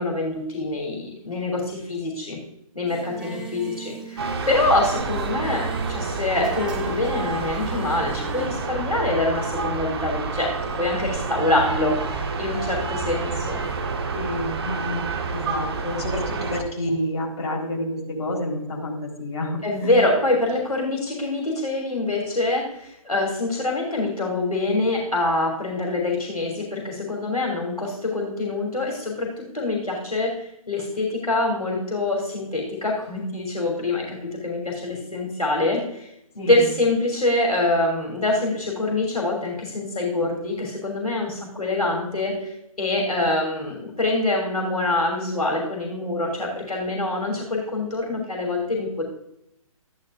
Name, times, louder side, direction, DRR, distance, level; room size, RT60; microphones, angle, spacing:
voice 1, 0.0-2.4 2.7-10.5 10.8-13.6 19.6-36.1 36.3-49.0, left 2 dB, 80° left, -1 dB, 3.0 m, -25 dB
Singing, 2.9-8.5, right 4 dB, 5° right, 0.9 m, -39 dB
sound 1, 4.2-16.6, right 4 dB, 40° right, 1.2 m, -29 dB
voice 2, 14.1-19.9 36.4-36.7, left 1 dB, 45° left, -3 dB, 4.3 m, -29 dB
13.5 x 10.5 x 2.6 m, 0.78 s
figure-of-eight pair, 135°, 19 cm